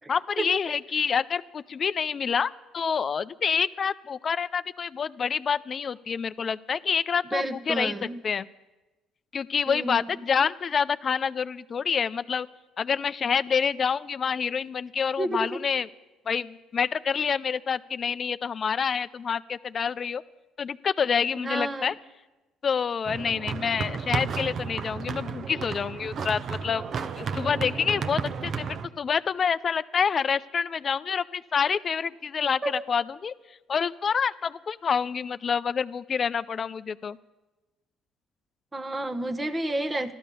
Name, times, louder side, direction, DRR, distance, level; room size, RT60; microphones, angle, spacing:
voice 1, 0.1-8.5 9.3-12.5 12.8-15.9 16.3-20.2 20.6-21.9 22.6-26.8 27.2-33.3 33.7-37.2, left 6 dB, 45° left, 15 dB, 0.5 m, -27 dB
voice 2, 7.3-8.2 9.7-10.2 15.2-15.6 21.3-21.9 32.6-32.8 38.7-40.2, right 1 dB, 20° right, 11 dB, 1.0 m, -30 dB
sound 1, 23.0-28.9, right 5 dB, 55° right, 0.7 m, -32 dB
14.0 x 12.5 x 6.9 m, 1.1 s
supercardioid pair, 80°, 0 cm